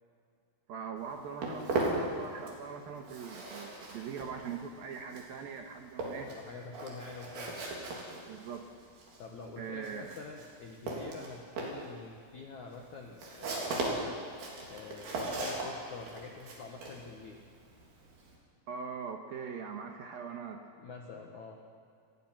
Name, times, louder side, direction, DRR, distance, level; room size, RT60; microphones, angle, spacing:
voice 1, 0.7-6.3 8.3-8.7 9.6-10.2 18.7-20.6, right 6 dB, 70° right, 4 dB, 2.3 m, -41 dB
Walk footsteps, 1.0-2.7 3.0-18.4, right 2 dB, 50° right, 5.2 m, -38 dB
voice 2, 6.3-7.6 9.2-14.2 14.7-17.4 20.8-21.6, left 4 dB, 80° left, 1 dB, 1.7 m, -46 dB
28.5 x 20.5 x 6.0 m, 2.4 s
omnidirectional pair, 5.9 m